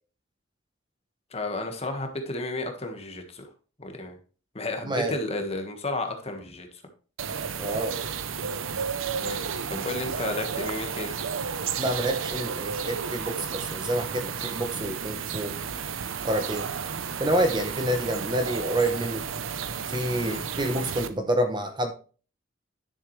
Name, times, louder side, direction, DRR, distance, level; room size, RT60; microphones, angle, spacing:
voice 1, 1.3-3.5 3.8-4.2 4.5-6.8 9.2-11.1 20.2-20.4, left 2 dB, 30° left, 5 dB, 1.5 m, -32 dB
voice 2, 4.8-5.2 7.6-7.9 11.8-15.6 16.2-16.7 17.2-19.2 19.9-21.9, right 1 dB, 20° right, 7 dB, 0.8 m, -28 dB
sound 1, 7.2-21.1, right 6 dB, 85° right, 0.7 m, -32 dB
10.5 x 7.2 x 3.2 m, 0.37 s
head